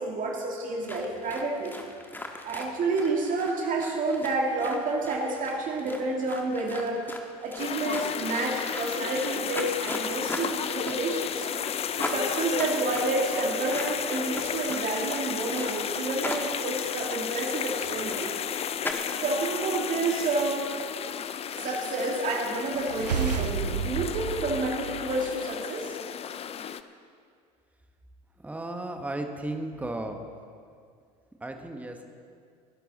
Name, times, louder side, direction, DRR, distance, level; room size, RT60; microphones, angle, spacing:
voice 1, 0.0-1.8 2.4-7.0 7.4-11.5 11.9-18.3 19.2-20.7 21.5-26.0, right 3 dB, 40° right, 0 dB, 2.3 m, -29 dB
sound 1, 0.8-18.9, left 1 dB, 10° left, 1.6 m, -40 dB
sound 2, 7.6-26.8, left 8 dB, 30° left, 0.6 m, -33 dB
sound 3, 22.8-25.5, right 7 dB, 90° right, 0.6 m, -32 dB
voice 2, 28.4-30.2 31.4-32.0, right 1 dB, 5° right, 5 dB, 1.3 m, -34 dB
20.0 x 11.0 x 4.2 m, 2.2 s
hypercardioid pair, 75°, 21 cm